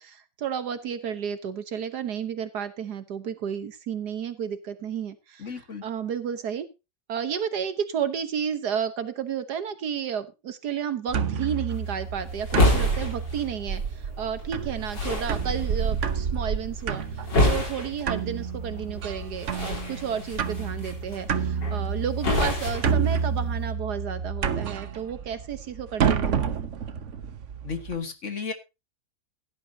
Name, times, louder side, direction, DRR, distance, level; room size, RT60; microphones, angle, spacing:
voice 1, 0.0-5.5 5.8-6.7 7.1-17.0 17.4-26.7, right 8 dB, 70° right, 11 dB, 1.6 m, -32 dB
voice 2, 5.4-5.8 27.6-28.5, left 5 dB, 45° left, 8 dB, 1.8 m, -33 dB
sound 1, 11.1-28.0, right 6 dB, 50° right, 1.1 m, -29 dB
sound 2, 11.7-23.7, left 2 dB, 90° left, 4.4 m, -29 dB
16.5 x 11.0 x 2.8 m, 0.27 s
omnidirectional pair, 1.9 m